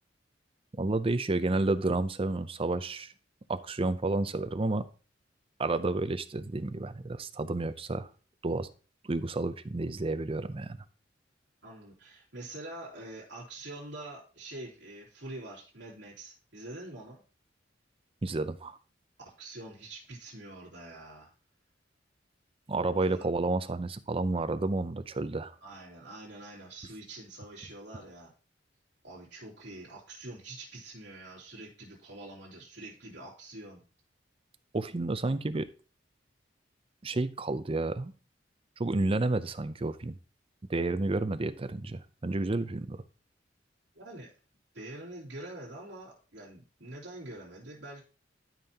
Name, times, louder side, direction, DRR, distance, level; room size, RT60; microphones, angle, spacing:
voice 1, 0.8-3.1 3.5-4.8 5.6-8.1 8.4-8.7 9.1-10.8 18.2-18.8 22.7-25.5 34.7-35.7 37.0-38.1 38.8-40.2 40.7-43.0, right 2 dB, 30° right, 12 dB, 0.6 m, -30 dB
voice 2, 11.6-17.2 19.2-21.3 22.7-23.2 25.6-28.3 29.0-33.8 43.9-44.3 44.7-48.0, right 2 dB, 65° right, -6 dB, 3.0 m, -45 dB
12.0 x 5.5 x 2.9 m, 0.36 s
head